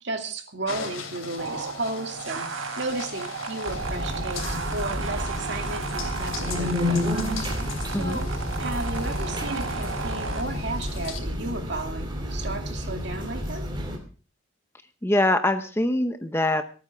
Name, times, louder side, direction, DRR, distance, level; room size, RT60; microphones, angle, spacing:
voice 1, 0.0-2.5 2.8-7.1 8.0-8.3 8.6-13.7, right 2 dB, 60° right, 4 dB, 2.3 m, -34 dB
sound 1, 0.7-11.2, left 5 dB, 90° left, 3.0 m, -40 dB
sound 2, 1.4-10.4, right 5 dB, 80° right, 1.8 m, -34 dB
sound 3, 3.7-14.0, left 1 dB, 25° right, 2.7 m, -30 dB
voice 2, 15.0-16.6, left 1 dB, 10° left, 8 dB, 0.8 m, -23 dB
25.0 x 9.3 x 3.5 m, 0.38 s
head